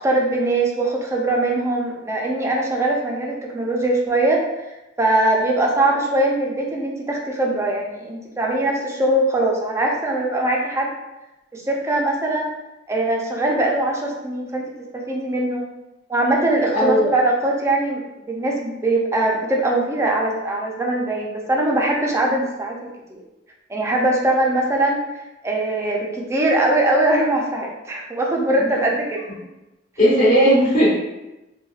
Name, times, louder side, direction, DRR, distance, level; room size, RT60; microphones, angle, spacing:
voice 1, 0.0-4.4 5.0-10.9 11.5-12.5 12.9-14.7 14.9-15.7 16.1-18.0 18.3-22.8 23.1-23.2 23.7-25.0 25.4-29.3, right 2 dB, 15° right, -1 dB, 0.4 m, -21 dB
voice 2, 16.7-17.2 30.0-30.9, equal, 45° left, -11 dB, 1.0 m, -16 dB
4.0 x 2.3 x 2.3 m, 0.98 s
head